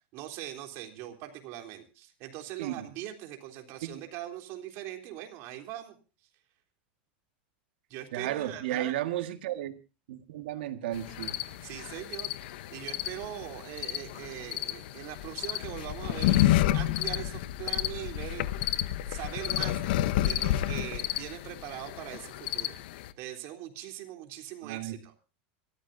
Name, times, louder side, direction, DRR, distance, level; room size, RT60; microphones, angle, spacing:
voice 1, 0.1-6.0 7.9-8.9 11.6-16.4 16.7-18.5 19.1-22.8 23.2-25.1, right 13 dB, 55° right, 5 dB, 3.5 m, -41 dB
voice 2, 8.1-9.7 10.1-11.4 24.6-25.0, right 12 dB, 80° right, 8 dB, 1.8 m, -34 dB
sound 1, 10.9-23.1, left 14 dB, 70° left, 1.0 m, -30 dB
26.0 x 14.0 x 2.7 m, 0.33 s
supercardioid pair, 120°, 5 cm